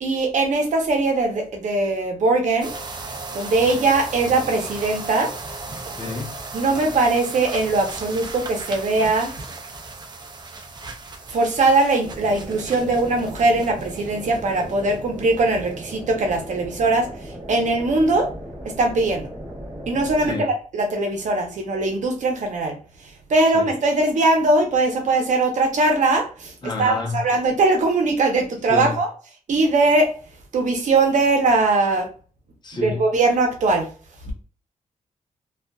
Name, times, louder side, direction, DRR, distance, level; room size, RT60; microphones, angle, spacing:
voice 1, 0.0-2.7 3.3-5.3 6.5-9.3 11.3-17.1 17.5-18.3 18.6-19.3 19.9-22.8 23.3-29.1 29.5-30.1 30.5-32.1 32.7-33.9, right 2 dB, 65° right, 0.8 m, -20 dB
sound 1, 2.6-15.0 15.2-15.6 15.9-16.0, right 3 dB, 35° right, 0.5 m, -36 dB
voice 2, 6.0-6.3 20.3-20.5 23.5-23.7 26.6-27.2 28.7-28.9 32.6-33.0 34.3-34.4, left 3 dB, 35° left, 0.7 m, -28 dB
sound 2, 12.0-20.3, equal, 15° right, 1.2 m, -37 dB
2.6 x 2.4 x 2.2 m
wide cardioid pair, 110°, 13 cm